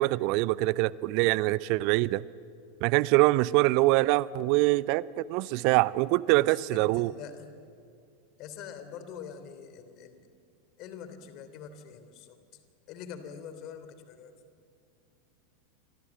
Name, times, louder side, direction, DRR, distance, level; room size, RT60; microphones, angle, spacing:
voice 1, 0.0-2.2 2.8-7.1, right 20 dB, 50° right, 21 dB, 0.6 m, -24 dB
voice 2, 6.4-7.6 8.4-10.2 10.8-12.6 12.9-14.3, left 7 dB, 45° left, 10 dB, 3.2 m, -44 dB
30.0 x 25.5 x 7.5 m, 2.4 s
figure-of-eight pair, 85°, 0 cm